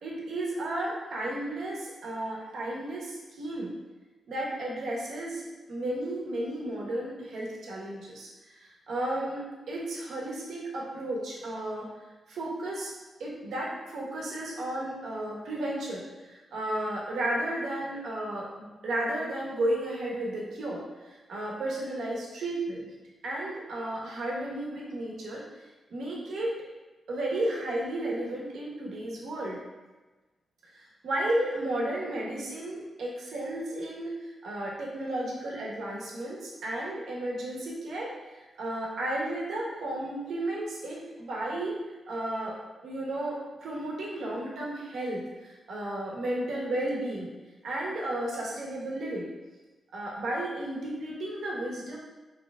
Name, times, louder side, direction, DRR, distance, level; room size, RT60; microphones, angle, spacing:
voice 1, 0.0-3.7 4.3-8.3 8.6-11.9 12.3-12.9 13.2-20.8 21.3-22.9 23.2-25.4 25.9-26.5 27.1-29.6 30.7-38.1 38.6-41.7 42.1-42.6 42.8-47.3 47.6-49.3 49.9-52.0, right 1 dB, 80° right, -3 dB, 0.9 m, -33 dB
4.6 x 3.2 x 2.2 m, 1.2 s
cardioid pair, 90°, 0 cm